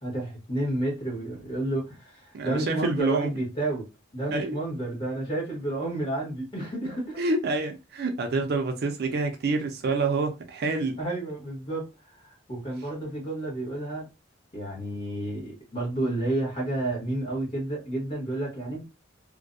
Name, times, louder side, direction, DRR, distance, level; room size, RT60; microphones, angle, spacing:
voice 1, 0.0-3.9 4.1-7.2 11.0-14.1 14.5-18.9, right 1 dB, 25° left, 1.3 m, -31 dB
voice 2, 2.3-3.3 4.3-4.6 7.2-11.0, right 3 dB, 50° right, 0.4 m, -27 dB
2.6 x 2.1 x 2.5 m
head